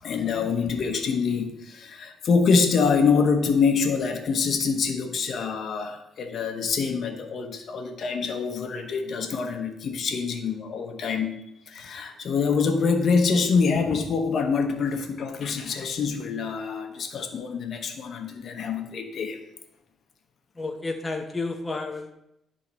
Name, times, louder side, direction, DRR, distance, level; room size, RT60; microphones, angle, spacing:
voice 1, 0.0-11.4 11.7-19.4, left 5 dB, 60° left, 5 dB, 1.1 m, -25 dB
voice 2, 20.6-22.1, left 3 dB, 20° left, 3 dB, 0.8 m, -31 dB
11.0 x 3.7 x 4.2 m, 0.83 s
cardioid pair, 90°, 0 cm